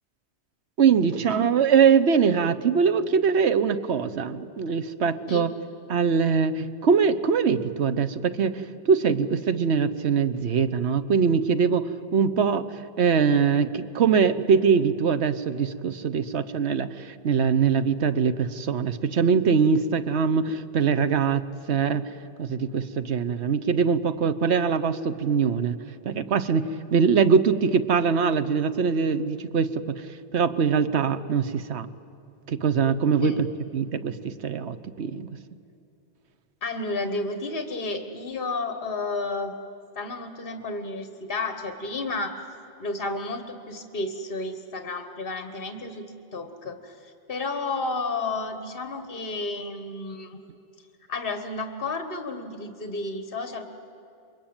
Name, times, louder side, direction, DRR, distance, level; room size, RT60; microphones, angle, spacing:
voice 1, 0.8-5.5 5.9-12.7 13.0-22.0 22.4-25.8 26.0-29.8 30.3-31.9 32.5-33.5 33.7-35.3, right 6 dB, 85° right, 11 dB, 1.3 m, -22 dB
voice 2, 36.6-39.6 39.9-42.4 42.8-46.0 46.3-50.4 51.1-53.6, left 3 dB, 55° left, 7 dB, 1.7 m, -32 dB
28.5 x 23.0 x 8.9 m, 2.6 s
omnidirectional pair, 1.1 m